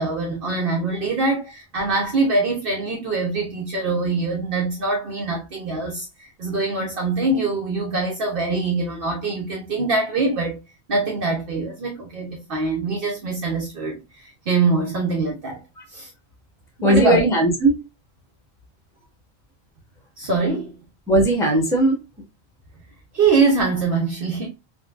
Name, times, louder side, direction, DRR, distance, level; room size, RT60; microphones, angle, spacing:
voice 1, 0.0-10.6 10.9-15.6 15.9-16.1 16.8-17.2 20.2-20.8 23.1-24.5, right 3 dB, 60° right, 0.9 m, -23 dB
voice 2, 16.8-17.8 21.1-22.0, right 1 dB, 5° left, 0.8 m, -18 dB
3.8 x 2.1 x 2.3 m
omnidirectional pair, 1.1 m